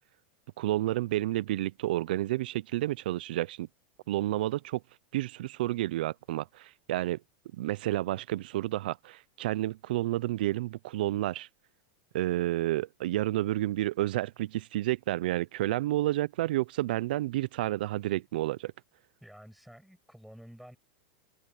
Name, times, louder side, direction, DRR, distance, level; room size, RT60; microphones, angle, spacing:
voice 1, 0.6-3.7 4.1-4.8 5.1-7.2 7.5-11.5 12.1-18.7, right 15 dB, 70° right, 0.5 m, -30 dB
voice 2, 19.2-20.8, equal, ahead, 6.8 m, -50 dB
supercardioid pair, 155°, 5 cm